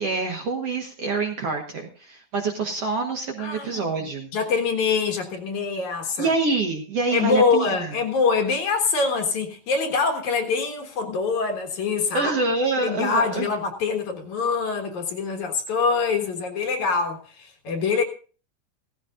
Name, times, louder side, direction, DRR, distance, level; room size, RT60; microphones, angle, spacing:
voice 1, 0.0-4.3 6.2-7.9 12.1-13.5, right 3 dB, 55° right, 1.9 m, -26 dB
voice 2, 3.4-3.9 4.3-6.3 7.1-12.3 12.8-18.0, left 5 dB, 60° left, 2.6 m, -24 dB
16.5 x 15.0 x 2.5 m
omnidirectional pair, 4.2 m